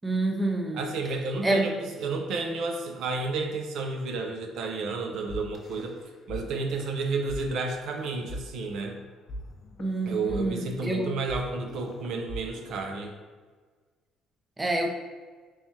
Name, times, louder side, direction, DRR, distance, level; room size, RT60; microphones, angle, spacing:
voice 1, 0.0-0.8 1.4-1.6 9.8-11.1 14.6-14.9, right 2 dB, 15° right, 3 dB, 0.5 m, -27 dB
voice 2, 0.7-6.0 6.3-9.0 10.1-13.1, right 3 dB, 70° right, 4 dB, 0.4 m, -31 dB
sound 1, 5.3-6.4 6.7-6.9 7.3-7.4 7.9-8.9 9.3-13.3, equal, 45° left, 0.5 m, -41 dB
3.4 x 3.0 x 2.8 m, 1.5 s
cardioid pair, 100°, 0 cm